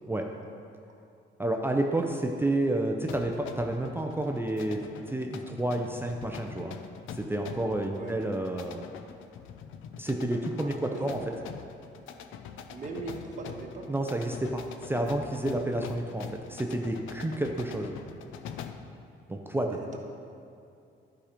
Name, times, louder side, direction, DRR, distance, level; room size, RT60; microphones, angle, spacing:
voice 1, 1.4-6.8 7.1-8.9 10.0-11.2 13.9-18.0 19.3-19.8, right 1 dB, 10° right, 2 dB, 0.6 m, -30 dB
sound 1, 3.1-18.9, left 7 dB, 85° left, 0.5 m, -44 dB
voice 2, 10.6-11.0 12.7-13.9 19.7-20.0, right 3 dB, 40° right, 0 dB, 1.4 m, -40 dB
11.5 x 5.1 x 5.1 m, 2.5 s
cardioid pair, 90°, 20 cm